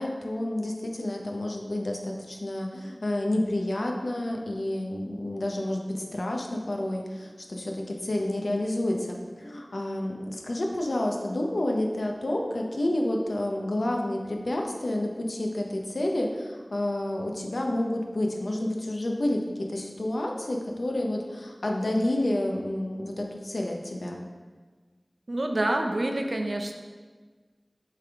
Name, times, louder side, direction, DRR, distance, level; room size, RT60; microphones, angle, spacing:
voice 1, 0.0-24.2, left 1 dB, 85° left, 1 dB, 0.7 m, -29 dB
voice 2, 25.3-26.8, right 1 dB, 65° right, 4 dB, 0.6 m, -27 dB
8.3 x 3.4 x 3.5 m, 1.4 s
wide cardioid pair, 55°, 0 cm